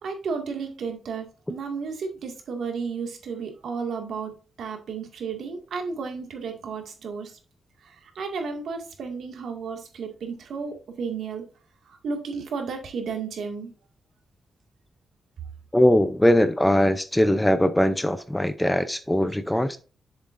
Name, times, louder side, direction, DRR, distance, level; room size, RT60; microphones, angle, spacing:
voice 1, 0.0-7.3 8.2-11.4 11.9-13.7, right 5 dB, 75° right, 4 dB, 2.0 m, -33 dB
voice 2, 15.7-19.8, left 1 dB, 5° left, 11 dB, 0.6 m, -21 dB
7.4 x 7.3 x 2.6 m, 0.35 s
wide cardioid pair, 135°, 0 cm